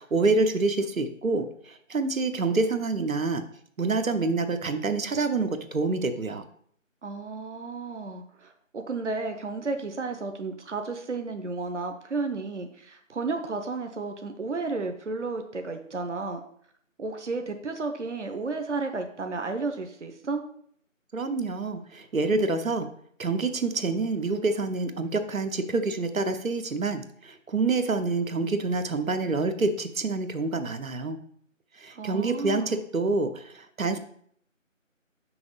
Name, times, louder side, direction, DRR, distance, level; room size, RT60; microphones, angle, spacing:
voice 1, 0.0-3.4 3.8-6.4 21.1-22.9 23.2-31.2 31.8-34.0, right 3 dB, 90° right, 8 dB, 0.8 m, -27 dB
voice 2, 7.0-16.4 17.0-20.4 31.9-32.8, right 3 dB, 60° right, 6 dB, 0.7 m, -33 dB
6.0 x 4.8 x 3.8 m, 0.63 s
figure-of-eight pair, 180°, 40 cm